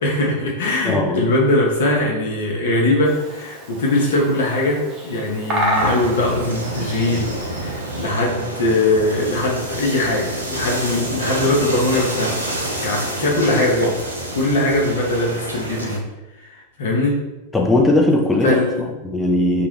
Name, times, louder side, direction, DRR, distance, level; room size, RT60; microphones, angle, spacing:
voice 1, 0.0-12.4 12.8-14.0 14.3-16.1 16.8-17.2 18.4-18.9, left 2 dB, 60° left, -2 dB, 0.7 m, -21 dB
voice 2, 0.8-1.3 17.5-19.7, left 1 dB, 5° left, 0 dB, 0.3 m, -18 dB
Bird vocalization bird call bird song, 3.0-8.1, equal, 35° right, 0.7 m, -28 dB
sound 1, 5.7-16.0, right 1 dB, 80° right, 0.4 m, -28 dB
2.3 x 2.1 x 3.2 m, 1.0 s
figure-of-eight pair, 90°, 0 cm